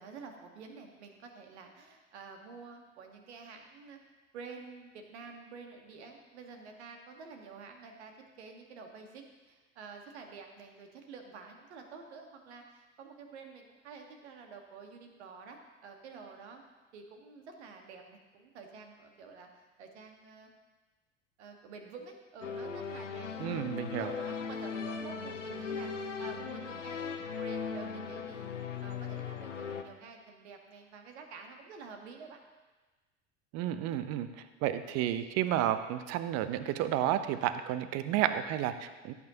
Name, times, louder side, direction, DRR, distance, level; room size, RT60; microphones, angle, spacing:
voice 1, 0.0-4.0 4.3-16.6 16.9-19.5 19.8-20.5 21.4-25.9 26.2-28.5 28.8-32.4, right 4 dB, 65° right, 4 dB, 1.6 m, -49 dB
sound 1, 22.4-29.8, left 5 dB, 80° left, 0.8 m, -38 dB
voice 2, 23.4-24.1 33.5-39.1, right 11 dB, 45° right, 12 dB, 0.8 m, -31 dB
16.5 x 8.4 x 2.9 m, 1.2 s
figure-of-eight pair, 70°, 36 cm